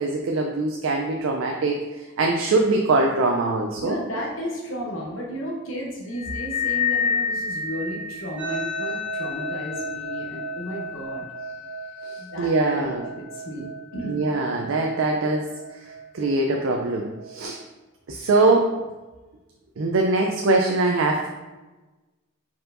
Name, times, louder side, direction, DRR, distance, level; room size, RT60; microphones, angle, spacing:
voice 1, 0.0-4.0 12.0-13.0 13.6-13.7 14.0-15.5 16.1-17.6 18.1-18.7 19.8-21.3, right 2 dB, 70° right, 1 dB, 0.4 m, -22 dB
voice 2, 3.7-11.3 12.2-13.6 13.9-14.2, equal, 70° left, -2 dB, 0.8 m, -33 dB
sound 1, 6.2-8.8, left 5 dB, 35° left, 0.4 m, -27 dB
sound 2, 8.4-17.4, equal, 5° right, 1.1 m, -35 dB
4.4 x 4.3 x 2.5 m, 1.2 s
head